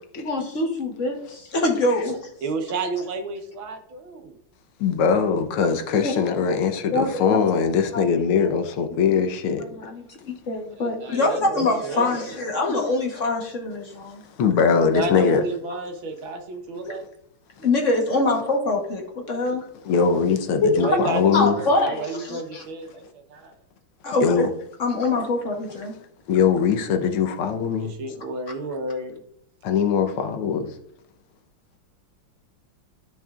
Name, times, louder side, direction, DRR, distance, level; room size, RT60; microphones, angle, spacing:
voice 1, 0.2-2.3 6.0-6.1 6.9-7.4 7.9-8.0 9.6-14.2 17.6-19.6 20.6-21.0 21.3-22.6 24.0-24.5 24.8-25.9, left 2 dB, 45° left, 1.2 m, -24 dB
voice 2, 2.4-4.4 10.8-12.3 14.8-17.1 20.7-23.5 27.8-29.2, right 3 dB, 70° right, 1.8 m, -31 dB
voice 3, 4.8-9.9 14.4-15.4 19.9-21.6 24.2-24.5 26.3-27.9 29.6-30.7, left 6 dB, 85° left, 1.8 m, -21 dB
13.0 x 5.4 x 2.4 m
omnidirectional pair, 2.3 m